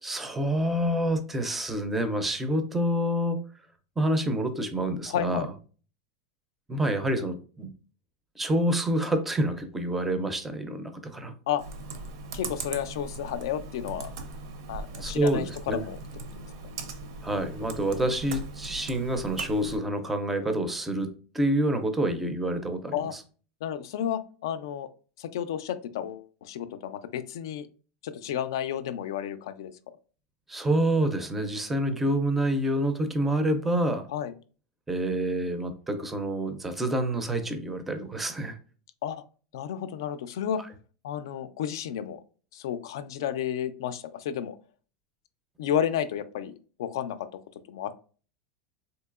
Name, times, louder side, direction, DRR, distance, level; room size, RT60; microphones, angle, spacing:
voice 1, 0.0-3.4 4.0-5.5 6.7-7.7 8.4-11.3 15.0-15.8 17.2-23.2 30.5-34.1 34.9-38.6, right 1 dB, 10° right, 8 dB, 0.4 m, -27 dB
voice 2, 5.1-5.5 11.5-11.6 12.3-14.1 14.7-16.0 22.9-23.1 23.6-24.9 25.2-27.7 28.0-29.7 34.1-34.3 39.0-39.2 39.5-40.6 41.0-42.2 42.5-44.6 45.6-47.3 47.7-47.9, left 9 dB, 80° left, 12 dB, 0.4 m, -32 dB
Computer keyboard, 11.6-19.8, right 3 dB, 70° right, 0.5 m, -39 dB
3.8 x 2.7 x 2.4 m, 0.38 s
supercardioid pair, 165°, 2 cm